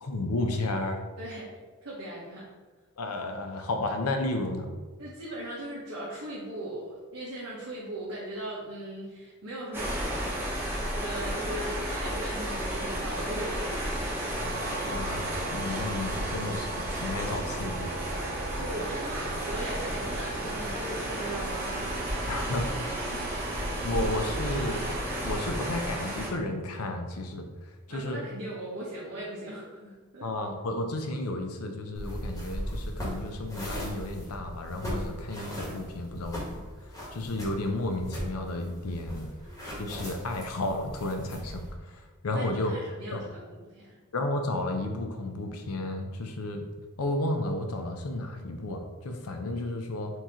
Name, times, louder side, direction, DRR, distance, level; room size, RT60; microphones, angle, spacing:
voice 1, 0.0-1.0 3.0-4.7 14.8-17.9 22.3-22.7 23.1-23.2 23.8-24.8 25.2-27.5 27.9-28.2 30.2-36.6 37.1-39.3 39.8-42.7 43.1-43.2 44.1-46.6 47.0-50.1, left 2 dB, 80° left, 4 dB, 0.6 m, -32 dB
voice 2, 1.2-1.5 1.8-2.5 5.0-9.9 10.9-14.1 18.2-21.8 27.9-30.3 38.8-38.9 39.4-39.6 42.3-44.0, right 1 dB, 85° right, -8 dB, 1.2 m, -38 dB
sound 1, 9.7-26.3, equal, 10° right, 1.1 m, -33 dB
sound 2, 14.0-26.3, right 5 dB, 45° right, 0.3 m, -41 dB
sound 3, 31.9-41.7, equal, 15° left, 1.2 m, -38 dB
4.5 x 2.9 x 3.7 m, 1.3 s
head